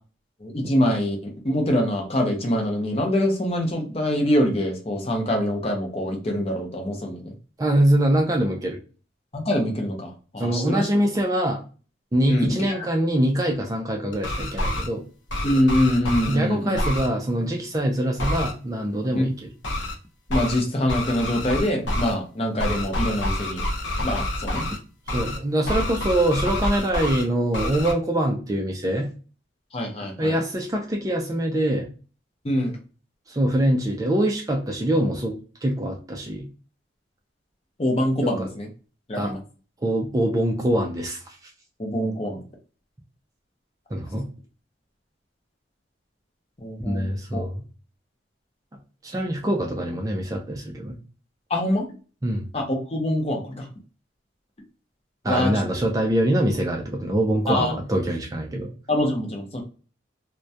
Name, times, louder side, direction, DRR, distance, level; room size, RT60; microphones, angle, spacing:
voice 1, 0.4-7.3 9.3-10.9 12.3-12.8 15.4-16.8 19.1-19.2 20.3-23.6 24.0-24.7 29.7-30.4 32.4-32.8 37.8-38.7 39.1-39.4 41.8-42.4 43.9-44.0 46.6-47.4 51.5-51.9 52.5-53.7 55.2-55.5 57.5-57.7 58.9-59.6, left 1 dB, 30° left, 2 dB, 0.5 m, -24 dB
voice 2, 7.6-8.8 10.4-11.6 12.1-15.0 16.3-19.3 25.1-29.1 30.2-31.9 33.3-36.5 38.2-38.5 39.2-39.3 39.8-41.5 43.9-44.3 46.9-47.6 49.0-51.0 52.2-52.5 55.2-58.7, right 1 dB, 20° right, 1 dB, 0.3 m, -24 dB
sound 1, 14.1-14.9 15.3-16.4 16.8-17.1 18.2-18.5 19.6-19.9 20.3-20.6 20.9-22.1 22.6-24.8 25.1-25.4 25.7-27.2 27.5-27.9, left 1 dB, 75° left, 0.6 m, -27 dB
2.2 x 2.1 x 2.6 m, 0.36 s
head